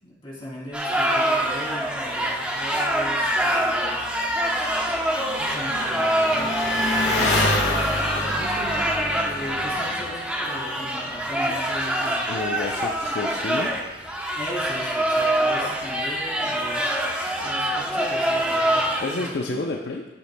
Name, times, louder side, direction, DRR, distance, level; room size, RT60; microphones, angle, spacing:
voice 1, 0.0-4.0 5.3-7.4 7.9-12.2 14.4-16.9 17.2-19.7, equal, 30° left, -5 dB, 2.8 m, -38 dB
sound 1, 0.7-19.3, right 1 dB, 5° right, 0.8 m, -25 dB
Engine, 0.9-19.0, left 2 dB, 85° left, 1.4 m, -32 dB
voice 2, 12.3-13.7 19.0-20.1, left 2 dB, 70° left, 2 dB, 0.6 m, -30 dB
13.0 x 7.6 x 2.2 m, 1.1 s
head